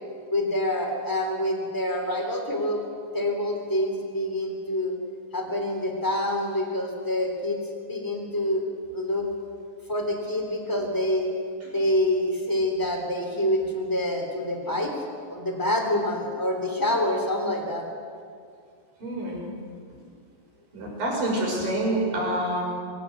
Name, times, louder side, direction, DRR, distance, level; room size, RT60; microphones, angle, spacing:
voice 1, 0.3-2.8 3.1-4.9 5.3-7.6 7.8-8.6 8.9-9.3 9.9-11.3 11.6-14.9 15.2-17.8, left 1 dB, 5° left, 3 dB, 2.8 m, -26 dB
voice 2, 19.0-19.4 20.7-22.6, right 1 dB, 75° right, -2 dB, 7.8 m, -27 dB
25.0 x 17.0 x 8.1 m, 2.2 s
omnidirectional pair, 4.1 m